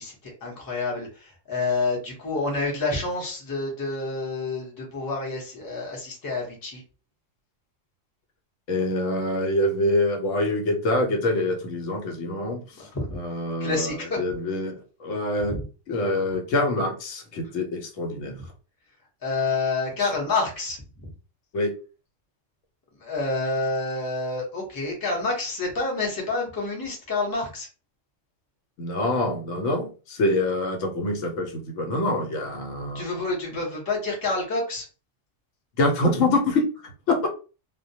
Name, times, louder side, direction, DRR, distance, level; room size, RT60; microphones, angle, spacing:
voice 1, 0.0-6.8 12.8-13.1 13.6-14.2 15.4-15.6 19.2-21.1 23.0-27.7 32.9-34.9, left 3 dB, 20° left, -2 dB, 0.7 m, -28 dB
voice 2, 8.7-12.9 13.1-15.6 15.9-18.4 20.0-20.1 21.5-21.7 28.8-33.1 35.8-36.7 37.1-37.3, left 2 dB, 75° left, 3 dB, 1.0 m, -25 dB
2.2 x 2.1 x 2.6 m, 0.34 s
omnidirectional pair, 1.3 m